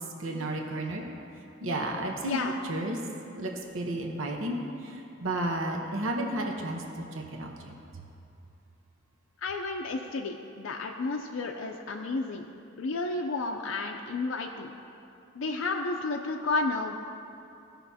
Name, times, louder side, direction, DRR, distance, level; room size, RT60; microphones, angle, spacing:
voice 1, 0.2-1.0 1.6-2.4 2.7-3.0 3.4-4.6 5.2-6.8 7.1-7.7, right 1 dB, 75° right, 1 dB, 0.9 m, -32 dB
voice 2, 2.2-2.5 9.4-12.5 12.8-14.7 15.3-17.0, left 3 dB, 75° left, 1 dB, 0.5 m, -31 dB
16.5 x 5.9 x 2.8 m, 2.7 s
head